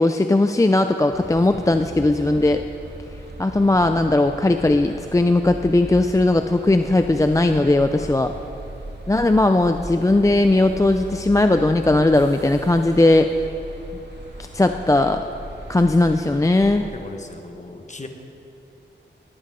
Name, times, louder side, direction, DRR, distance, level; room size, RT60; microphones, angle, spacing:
voice 1, 0.0-2.6 3.4-8.3 9.1-13.3 14.5-15.2 15.7-16.9, left 2 dB, 15° left, 7 dB, 0.4 m, -18 dB
sound 1, 1.1-16.8, right 1 dB, 65° right, 2.0 m, -38 dB
voice 2, 8.0-8.5 16.9-18.1, left 2 dB, 40° left, 4 dB, 1.4 m, -39 dB
18.5 x 13.0 x 3.7 m, 2.8 s
wide cardioid pair, 80°, 19 cm